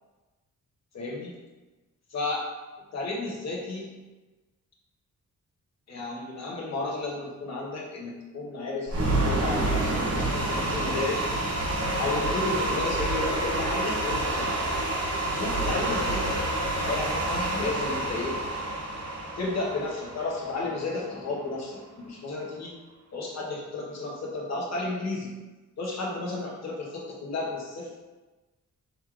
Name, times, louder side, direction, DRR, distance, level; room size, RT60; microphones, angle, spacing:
voice 1, 0.9-1.3 2.1-2.4 2.9-3.9 5.9-11.2 11.9-14.6 15.3-16.4 16.8-18.4 19.4-21.8 22.0-22.7 23.1-25.4 25.8-28.0, left 3 dB, 55° left, -3 dB, 1.1 m, -33 dB
sound 1, 8.9-21.0, right 1 dB, 45° right, 0.9 m, -28 dB
5.3 x 3.1 x 2.4 m, 1.2 s
wide cardioid pair, 150°, 33 cm